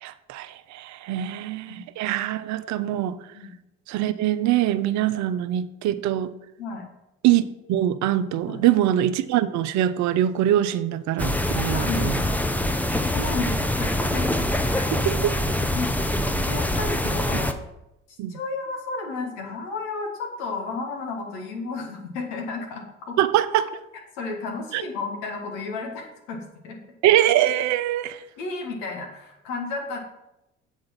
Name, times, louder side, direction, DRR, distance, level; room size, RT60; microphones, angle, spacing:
voice 1, 0.0-3.2 3.9-6.3 7.2-12.1 15.1-15.4 18.2-18.3 23.2-23.7 24.7-24.8 27.0-28.2, right 12 dB, 60° right, 14 dB, 0.6 m, -23 dB
sound 1, 11.2-17.5, left 1 dB, 5° left, 0.6 m, -24 dB
voice 2, 11.5-12.4 12.9-15.0 15.8-16.1 16.5-17.5 18.1-23.2 24.2-26.8 28.4-30.0, left 3 dB, 80° left, 2 dB, 1.5 m, -33 dB
8.0 x 3.7 x 5.8 m, 0.90 s
hypercardioid pair, 60°, 32 cm